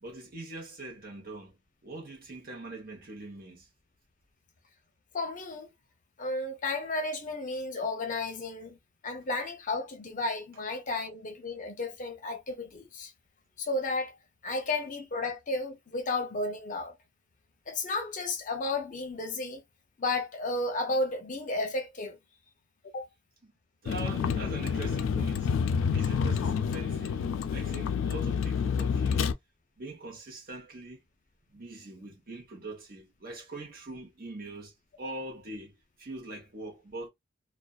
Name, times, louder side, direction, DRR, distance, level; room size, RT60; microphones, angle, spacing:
voice 1, 0.0-3.7 23.4-23.5 23.8-29.3 29.8-31.0 31.5-37.1, right 2 dB, 50° right, 1.0 m, -43 dB
voice 2, 5.1-5.7 6.2-8.8 9.0-13.1 13.6-14.2 14.4-16.9 17.7-19.6 20.0-22.2 22.9-23.1, left 2 dB, 40° left, 0.6 m, -33 dB
Vehicle, 23.9-29.3, left 6 dB, 85° left, 0.3 m, -28 dB
2.5 x 2.2 x 2.3 m
head